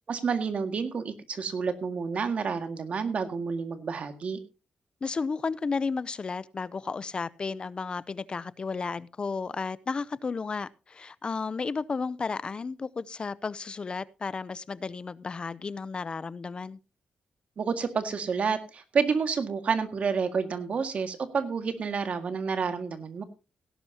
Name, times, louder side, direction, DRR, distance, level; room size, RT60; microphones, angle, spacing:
voice 1, 0.1-4.4 17.6-23.2, right 5 dB, 60° right, 1.9 m, -29 dB
voice 2, 5.0-16.8, left 4 dB, 40° left, 0.5 m, -33 dB
17.0 x 11.0 x 2.8 m
cardioid pair, 95°, 3 cm